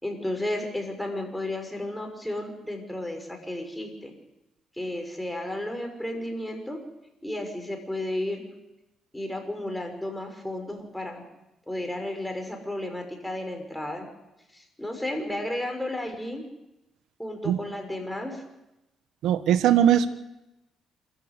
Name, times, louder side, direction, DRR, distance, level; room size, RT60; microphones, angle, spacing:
voice 1, 0.0-4.1 4.7-6.8 7.2-8.5 9.1-11.2 11.7-14.1 14.5-16.4 17.2-18.4, left 1 dB, 5° left, 4 dB, 5.7 m, -33 dB
voice 2, 19.2-20.1, right 10 dB, 80° right, 11 dB, 1.4 m, -20 dB
26.5 x 14.5 x 8.2 m, 0.93 s
cardioid pair, 90°, 0 cm